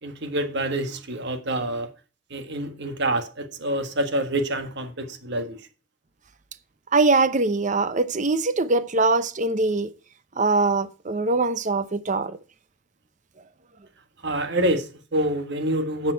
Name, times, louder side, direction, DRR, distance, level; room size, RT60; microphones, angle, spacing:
voice 1, 0.0-1.9 2.3-5.6 14.2-16.1, right 1 dB, 55° right, 1.5 m, -27 dB
voice 2, 6.9-9.9 10.4-12.4, right 3 dB, 35° right, 0.7 m, -22 dB
10.5 x 7.4 x 4.6 m
head